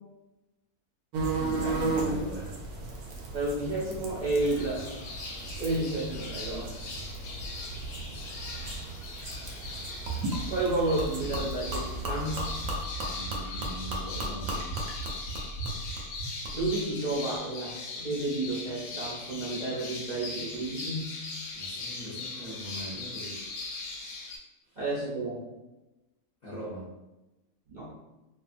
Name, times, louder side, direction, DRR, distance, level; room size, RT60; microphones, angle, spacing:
sound 1, 1.1-12.8, right 3 dB, 90° right, 1.1 m, -36 dB
voice 1, 1.4-2.6 13.0-14.7 21.5-23.4 24.7-24.8 26.4-26.9, equal, 50° left, -8 dB, 0.5 m, -40 dB
voice 2, 3.3-4.8 5.6-6.7 10.5-12.4 16.5-21.1 24.8-25.4 27.7-27.9, right 2 dB, 45° right, -8 dB, 0.6 m, -31 dB
sound 2, 4.4-24.4, left 3 dB, 75° left, 1.0 m, -40 dB
Gurgling / Liquid, 10.1-16.9, right 1 dB, 70° right, 1.0 m, -35 dB
2.7 x 2.4 x 2.5 m, 1.0 s
omnidirectional pair, 1.6 m